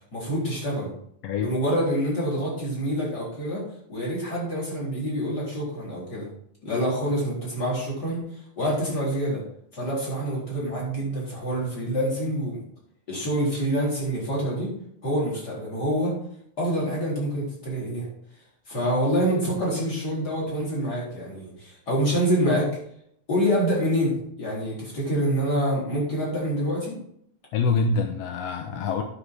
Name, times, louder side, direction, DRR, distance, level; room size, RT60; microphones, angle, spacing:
voice 1, 0.1-0.9 1.4-3.6 3.9-6.3 6.6-9.4 9.7-12.6 13.1-14.7 15.0-16.1 16.6-18.1 18.7-22.7 23.3-27.0, equal, 30° left, -5 dB, 4.4 m, -26 dB
voice 2, 27.5-29.0, left 4 dB, 75° left, 5 dB, 1.6 m, -25 dB
9.4 x 7.2 x 4.7 m, 0.68 s
omnidirectional pair, 3.7 m